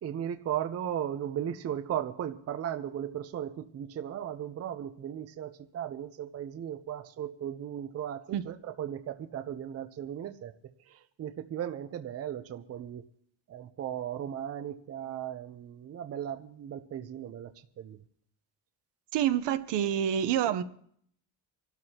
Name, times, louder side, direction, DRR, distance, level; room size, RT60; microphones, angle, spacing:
voice 1, 0.0-10.5 10.9-13.0 13.5-18.0 20.5-20.6, right 10 dB, 35° right, 0.6 m, -36 dB
voice 2, 19.1-20.6, right 10 dB, 70° right, 1.0 m, -27 dB
26.5 x 12.5 x 2.9 m
cardioid pair, 155°, 43 cm